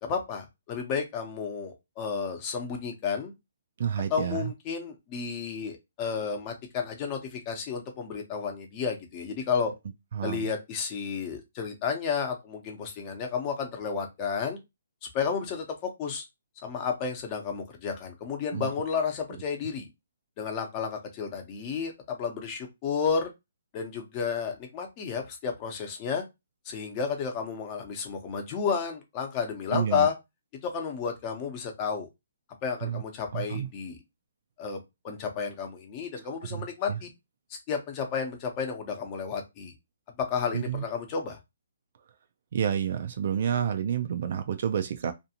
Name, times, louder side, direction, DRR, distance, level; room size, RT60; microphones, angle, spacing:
voice 1, 0.0-3.3 4.1-9.7 10.2-14.6 15.1-16.2 16.6-19.9 20.4-23.3 23.7-26.2 26.6-30.1 30.6-32.1 32.6-34.0 34.6-37.1 37.5-39.7 40.2-41.4, left 6 dB, 30° left, 0.7 m, -32 dB
voice 2, 3.8-4.5 10.1-10.5 18.5-18.7 29.7-30.1 32.8-33.0 33.3-33.7 36.5-37.0 40.5-40.8 42.5-45.1, right 8 dB, 55° right, 0.4 m, -29 dB
2.6 x 2.4 x 2.8 m
hypercardioid pair, 150°, 0 cm